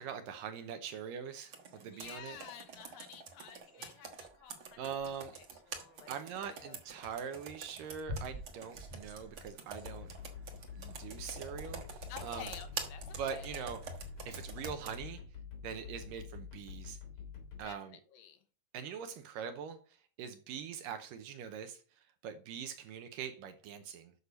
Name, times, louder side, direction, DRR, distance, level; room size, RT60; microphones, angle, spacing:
voice 1, 0.0-2.4 4.8-5.3 6.1-10.1 10.8-12.5 13.2-13.8 14.3-15.2 15.6-17.0 17.6-18.0 18.7-19.8 20.2-21.8 22.2-24.1, right 7 dB, 75° right, 2.2 m, -42 dB
Computer keyboard, 1.5-15.0, right 4 dB, 60° right, 1.4 m, -46 dB
voice 2, 1.8-7.1 12.1-13.6 17.6-18.4, left 9 dB, 75° left, 2.6 m, -52 dB
sound 1, 9.8-17.6, left 5 dB, 50° left, 4.8 m, -47 dB
8.3 x 6.4 x 5.4 m
omnidirectional pair, 4.3 m